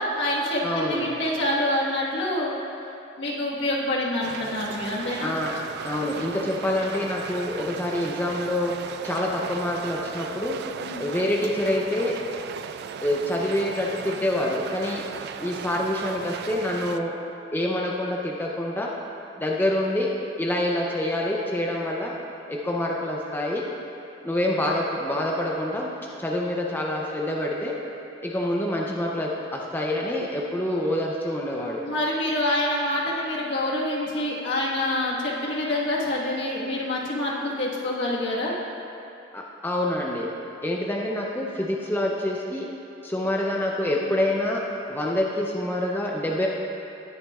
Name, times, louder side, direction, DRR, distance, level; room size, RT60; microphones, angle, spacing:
voice 1, 0.0-2.5 3.2-5.3 10.8-11.1 31.8-38.5, left 1 dB, 65° left, -5 dB, 1.5 m, -26 dB
voice 2, 0.6-1.1 5.2-5.6 5.8-8.8 9.0-10.6 11.0-12.2 13.0-15.1 15.4-17.2 17.5-18.9 19.4-20.1 20.4-22.2 22.5-23.7 24.2-25.9 26.2-27.8 28.2-31.8 39.3-40.3 40.6-42.7 43.0-46.5, left 1 dB, 10° left, -2 dB, 0.6 m, -26 dB
sound 1, 4.2-17.0, right 6 dB, 55° right, 0.3 m, -37 dB
18.0 x 7.1 x 2.4 m, 2.8 s
head